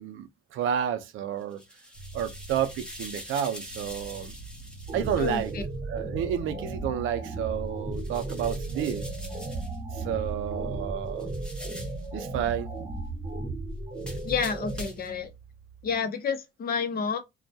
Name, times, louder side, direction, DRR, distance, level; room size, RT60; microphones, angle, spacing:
voice 1, 0.0-1.6 2.1-4.3 4.9-5.5 5.9-9.0 9.9-11.3 12.1-12.7, right 9 dB, 85° right, 0.5 m, -30 dB
sound 1, 1.4-5.6 7.9-9.8 11.2-12.1 14.0-15.2, equal, 5° left, 0.8 m, -45 dB
sound 2, 1.9-16.0, right 2 dB, 85° left, 0.8 m, -45 dB
sound 3, 4.9-14.9, right 2 dB, 30° right, 0.8 m, -35 dB
voice 2, 5.2-5.6 14.2-15.3 15.8-17.2, left 6 dB, 50° left, 0.6 m, -29 dB
2.2 x 2.1 x 2.6 m
cardioid pair, 90°, 20 cm